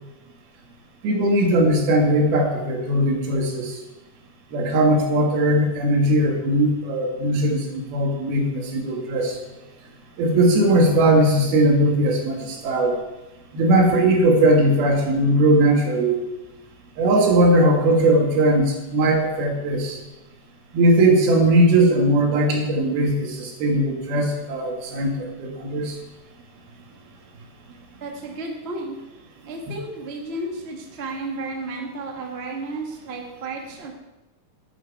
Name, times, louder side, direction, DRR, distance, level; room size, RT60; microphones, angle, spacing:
voice 1, 1.0-3.8 4.5-9.4 10.2-13.0 13.5-16.2 17.0-20.0 20.7-26.0, right 1 dB, 85° right, 1 dB, 3.7 m, -19 dB
voice 2, 28.0-29.0 29.4-33.9, right 2 dB, 45° right, 1 dB, 0.8 m, -32 dB
11.5 x 10.0 x 4.8 m, 1.0 s
omnidirectional pair, 4.3 m